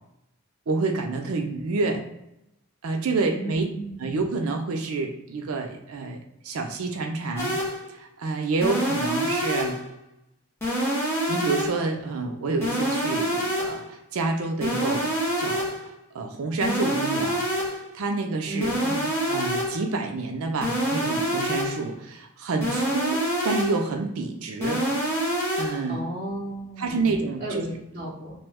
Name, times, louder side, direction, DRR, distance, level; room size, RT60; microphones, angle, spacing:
voice 1, 0.7-2.0 2.8-3.6 4.0-7.6 7.9-9.8 11.3-15.1 15.4-15.7 16.1-17.6 17.9-18.7 19.3-24.8 25.6-26.0 26.8-27.6 28.0-28.1, right 3 dB, 75° right, 3 dB, 0.4 m, -28 dB
voice 2, 3.3-4.1 18.5-19.1 25.9-28.3, right 1 dB, 30° right, -10 dB, 0.7 m, -34 dB
sound 1, 7.4-7.9 8.6-9.9 10.6-11.9 12.6-13.9 14.6-15.9 16.6-17.9 18.6-19.9 20.6-21.9 22.6-23.9 24.6-25.9, equal, 10° left, 0.7 m, -26 dB
2.9 x 2.2 x 3.4 m, 0.83 s
head